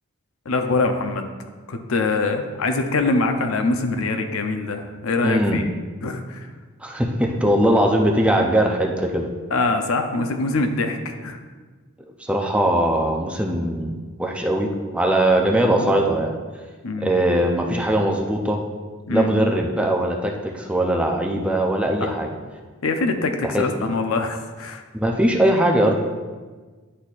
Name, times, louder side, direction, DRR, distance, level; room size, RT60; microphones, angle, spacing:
voice 1, 0.5-1.3 1.7-5.7 6.0-6.5 9.5-11.4 15.4-15.9 16.8-17.2 19.1-19.3 22.0-22.1 22.8-24.8, left 3 dB, 75° left, 6 dB, 0.6 m, -24 dB
voice 2, 5.2-5.6 6.8-9.3 12.2-16.4 17.0-18.6 19.1-22.4 23.5-23.7 24.9-25.9, right 1 dB, 5° right, 1 dB, 0.4 m, -20 dB
9.9 x 4.1 x 2.4 m, 1.4 s
head